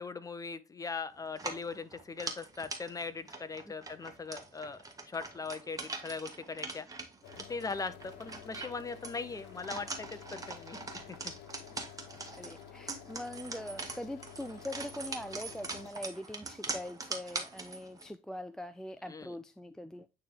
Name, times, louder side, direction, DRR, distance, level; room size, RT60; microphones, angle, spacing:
voice 1, 0.0-6.9 7.5-10.8 11.2-11.3 19.1-19.3, left 4 dB, 20° left, 0.8 m, -40 dB
sound 1, 1.3-18.1, right 3 dB, 20° right, 1.5 m, -43 dB
sound 2, 7.2-15.9, left 11 dB, 85° left, 1.0 m, -52 dB
voice 2, 12.3-20.1, left 1 dB, 5° left, 0.4 m, -42 dB
9.2 x 3.4 x 3.7 m
cardioid pair, 110°, 17 cm